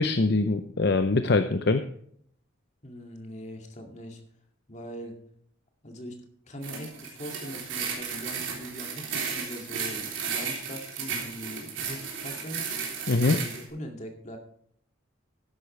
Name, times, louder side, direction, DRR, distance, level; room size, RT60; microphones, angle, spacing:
voice 1, 0.0-1.8 13.1-13.4, left 3 dB, 55° left, 8 dB, 0.7 m, -23 dB
voice 2, 2.8-4.2 4.7-5.2 5.8-6.2 6.5-12.7 13.2-14.4, equal, 35° left, 3 dB, 2.3 m, -41 dB
sound 1, 6.6-13.6, right 6 dB, 70° right, 3.4 m, -34 dB
13.0 x 11.5 x 3.3 m, 0.66 s
head